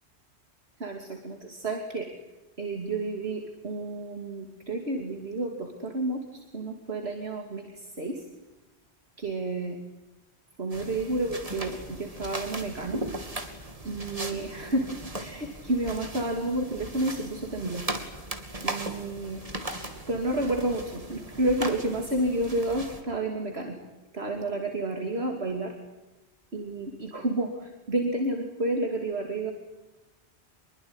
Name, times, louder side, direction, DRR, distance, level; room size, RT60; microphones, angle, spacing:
voice 1, 0.8-2.1 2.6-8.3 9.2-9.8 10.6-13.0 13.8-17.8 18.6-19.4 20.1-23.8 24.1-25.7 26.5-29.5, right 2 dB, 70° right, 3 dB, 3.0 m, -30 dB
sound 1, 10.7-23.0, right 1 dB, 35° right, 2.9 m, -38 dB
25.5 x 23.0 x 9.8 m, 1.1 s
omnidirectional pair, 1.1 m